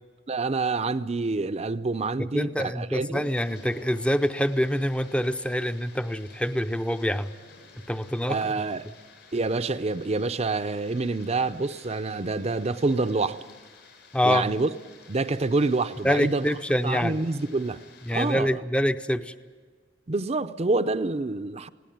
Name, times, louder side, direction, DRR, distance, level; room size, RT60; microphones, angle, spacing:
voice 1, 0.3-3.3 8.3-8.9 9.3-13.4 14.2-14.7 15.1-16.5 16.8-17.8 18.1-18.5 20.1-21.7, right 3 dB, 35° right, 0.6 m, -27 dB
voice 2, 2.3-7.3 7.9-8.4 14.1-14.5 16.0-17.2 18.1-19.3, equal, 5° left, 0.6 m, -25 dB
sound 1, 3.1-18.3, left 4 dB, 70° left, 6.8 m, -52 dB
20.0 x 17.5 x 9.3 m
head